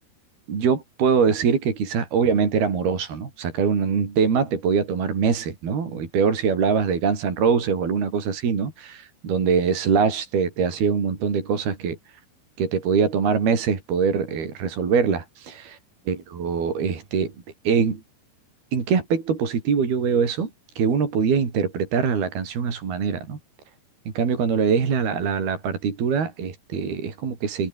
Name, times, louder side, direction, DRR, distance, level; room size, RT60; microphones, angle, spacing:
voice 1, 0.5-12.0 12.6-15.8 16.1-17.3 17.6-18.0 18.7-20.5 20.8-23.4 24.1-27.7, right 6 dB, 65° right, 6.4 m, -23 dB
omnidirectional pair, 4.8 m